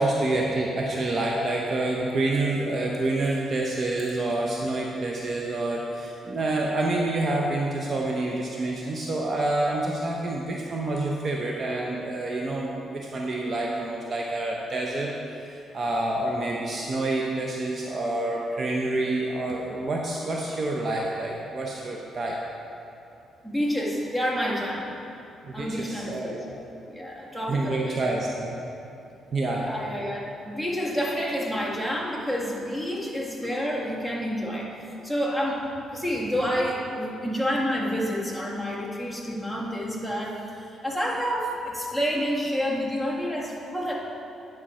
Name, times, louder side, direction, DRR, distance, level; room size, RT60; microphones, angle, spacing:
voice 1, 0.0-15.1 15.4-22.4 25.4-26.5 27.5-28.6 29.3-29.7, right 2 dB, 45° right, -2 dB, 0.9 m, -28 dB
voice 2, 23.4-24.9 25.5-26.4 26.9-28.2 29.4-34.7 35.0-43.9, equal, 10° right, -3 dB, 1.7 m, -29 dB
10.0 x 6.2 x 4.3 m, 2.8 s
cardioid pair, 90°, 0 cm